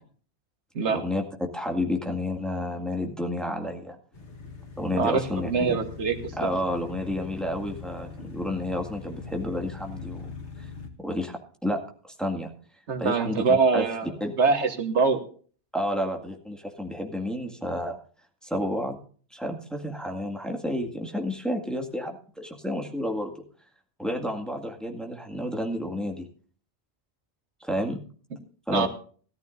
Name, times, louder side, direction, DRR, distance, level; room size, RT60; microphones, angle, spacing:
voice 1, 0.9-4.0 4.8-5.8 6.4-10.3 11.0-11.8 12.2-12.5 13.0-13.8 14.2-14.3 15.7-18.0 18.4-19.0 19.3-23.4 24.0-26.3 27.6-28.0 28.7-28.9, left 1 dB, ahead, 1 dB, 2.0 m, -30 dB
sound 1, 4.1-10.9, left 5 dB, 90° left, 2.0 m, -41 dB
voice 2, 5.0-6.2 12.9-14.1 14.4-15.2 28.7-28.9, right 5 dB, 90° right, 7 dB, 1.6 m, -23 dB
18.0 x 13.5 x 2.6 m, 0.43 s
omnidirectional pair, 1.1 m